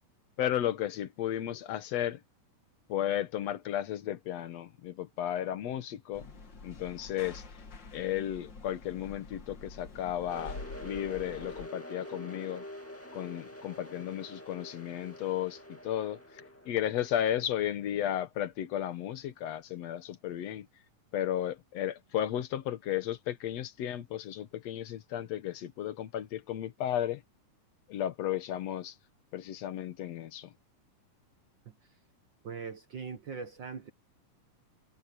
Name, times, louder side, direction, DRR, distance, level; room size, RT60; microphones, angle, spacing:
voice 1, 0.4-2.2 2.9-6.3 6.6-7.4 7.9-12.6 13.1-20.7 21.1-27.2 27.9-29.0 29.3-30.5, left 11 dB, 60° left, 2.1 m, -34 dB
sound 1, 6.1-11.7, left 3 dB, 35° left, 2.5 m, -47 dB
sound 2, 10.3-17.9, equal, 5° left, 1.6 m, -46 dB
voice 2, 32.4-33.9, right 5 dB, 60° right, 1.2 m, -41 dB
omnidirectional pair, 3.8 m